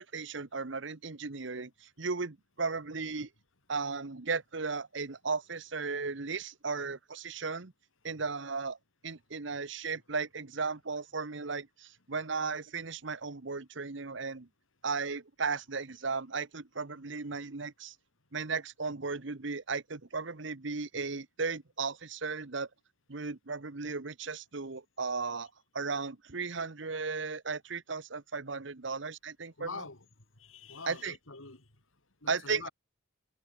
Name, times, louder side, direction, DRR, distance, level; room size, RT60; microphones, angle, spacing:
voice 1, 0.0-3.3 3.7-7.7 8.0-8.8 9.0-14.5 14.8-17.9 18.3-22.7 23.1-29.8 30.9-31.2 32.3-32.7, right 4 dB, 60° right, 1.1 m, -36 dB
voice 2, 29.6-30.0 30.4-31.7 32.2-32.7, left 4 dB, 85° left, 4.2 m, -44 dB
head